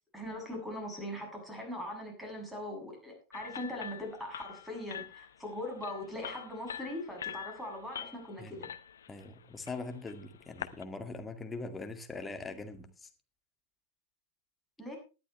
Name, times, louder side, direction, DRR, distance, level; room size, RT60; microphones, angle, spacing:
voice 1, 0.1-8.7 14.8-15.0, left 1 dB, ahead, 1 dB, 7.6 m, -41 dB
sound 1, 3.3-10.8, left 8 dB, 65° left, 0.9 m, -45 dB
voice 2, 9.1-13.1, left 3 dB, 15° left, 6 dB, 2.2 m, -42 dB
19.0 x 11.5 x 3.3 m, 0.32 s
figure-of-eight pair, 90°, 0 cm